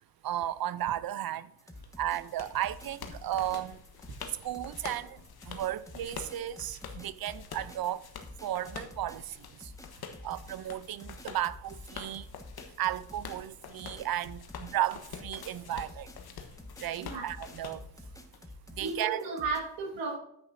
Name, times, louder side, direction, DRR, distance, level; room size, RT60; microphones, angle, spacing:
voice 1, 0.2-1.5 2.0-3.8 4.4-5.2 5.5-8.0 8.4-9.4 9.6-9.7 10.2-12.3 12.8-16.1 16.8-17.8 18.7-19.2, right 12 dB, 55° right, 0.6 m, -34 dB
sound 1, 1.6-19.6, left 1 dB, 5° left, 1.4 m, -49 dB
sound 2, 1.8-18.4, left 6 dB, 60° left, 1.3 m, -47 dB
voice 2, 18.8-20.1, right 4 dB, 80° right, 2.0 m, -34 dB
10.0 x 8.8 x 2.7 m
supercardioid pair, 55°, 43 cm